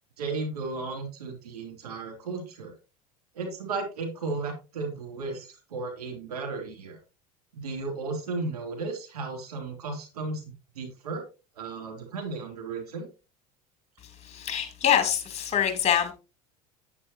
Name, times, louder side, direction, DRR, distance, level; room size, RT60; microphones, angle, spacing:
voice 1, 0.2-2.7 3.3-7.0 7.5-11.2 11.6-13.1, right 3 dB, 90° right, 3.1 m, -34 dB
voice 2, 14.2-16.1, left 9 dB, 35° left, 3.2 m, -25 dB
10.5 x 9.1 x 2.9 m
hypercardioid pair, 85°, 19 cm